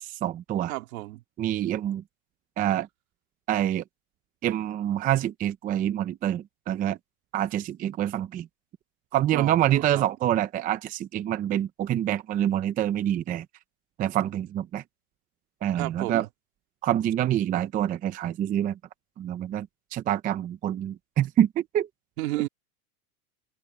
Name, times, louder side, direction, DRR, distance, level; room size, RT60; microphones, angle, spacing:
voice 1, 0.0-0.7 1.4-2.0 2.6-2.9 3.5-3.8 4.4-7.0 7.3-8.5 9.1-13.5 14.0-14.8 15.6-16.3 16.8-18.8 19.2-19.7 19.9-21.9, right 11 dB, 20° right, 0.6 m, -26 dB
voice 2, 0.7-1.2 9.3-10.0 15.7-16.3 22.2-22.5, right 19 dB, 70° right, 3.4 m, -32 dB
open air
supercardioid pair, 150°, 44 cm